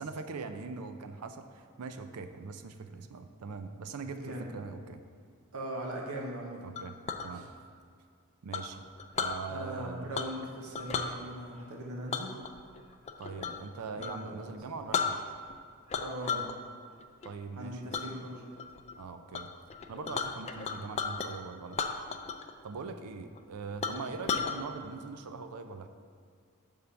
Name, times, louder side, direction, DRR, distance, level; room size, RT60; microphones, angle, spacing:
voice 1, 0.0-5.0 6.6-7.0 7.2-7.5 8.4-8.8 9.2-10.1 13.2-15.2 17.2-17.8 19.0-19.5 19.9-21.8 22.6-25.9, right 4 dB, 85° right, 8 dB, 0.5 m, -41 dB
voice 2, 4.1-4.5 5.5-6.6 7.3-7.4 9.5-12.3 13.4-13.5 14.0-14.5 16.0-16.5 17.6-18.5 23.9-24.1, right 1 dB, 65° right, -1 dB, 0.9 m, -40 dB
Chink clink, 6.8-7.3 8.5-9.4 10.1-10.5 10.7-11.1 12.1-13.6 14.0-14.2 14.6-14.7 14.9-15.6 15.9-16.5 16.9-17.3 17.9-18.1 18.6-18.9 19.3-19.4 19.7-21.3 21.7-22.5 22.8-22.9 23.4-23.5 23.8-24.6, left 6 dB, 30° left, 0.3 m, -34 dB
6.7 x 3.6 x 5.7 m, 2.1 s
head